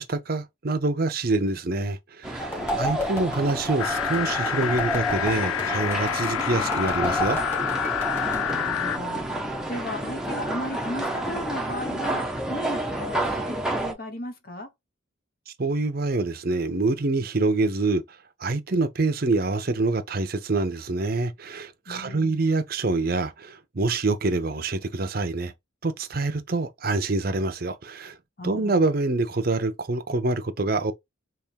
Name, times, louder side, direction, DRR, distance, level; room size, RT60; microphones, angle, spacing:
voice 1, 0.0-7.4 15.6-18.0 18.4-25.5 25.8-28.2 28.4-30.9, right 3 dB, 45° right, 0.6 m, -26 dB
sound 1, 2.2-13.9, right 1 dB, 5° right, 0.7 m, -31 dB
sound 2, 2.4-8.6, equal, 10° left, 1.8 m, -31 dB
voice 2, 2.6-3.1 8.5-14.7 21.9-22.4 28.4-28.8, left 1 dB, 45° left, 1.0 m, -36 dB
sound 3, 3.8-9.0, left 10 dB, 85° left, 0.3 m, -28 dB
3.5 x 3.0 x 4.5 m
head